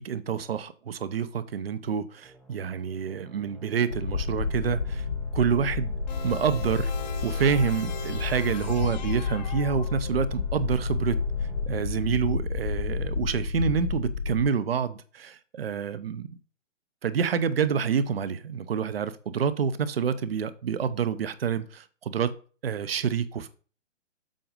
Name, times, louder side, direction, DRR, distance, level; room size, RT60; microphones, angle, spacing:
voice 1, 0.0-5.1 5.3-5.9 6.2-6.9 7.2-11.2 11.7-16.3 17.0-22.3 22.6-23.5, right 7 dB, 50° right, 13 dB, 0.9 m, -28 dB
sound 1, 2.2-11.7, right 2 dB, ahead, 0.6 m, -50 dB
sound 2, 3.9-14.4, left 4 dB, 90° left, 3.8 m, -30 dB
sound 3, 6.1-10.4, left 7 dB, 35° left, 0.9 m, -40 dB
7.7 x 4.9 x 5.2 m, 0.39 s
figure-of-eight pair, 135°, 37 cm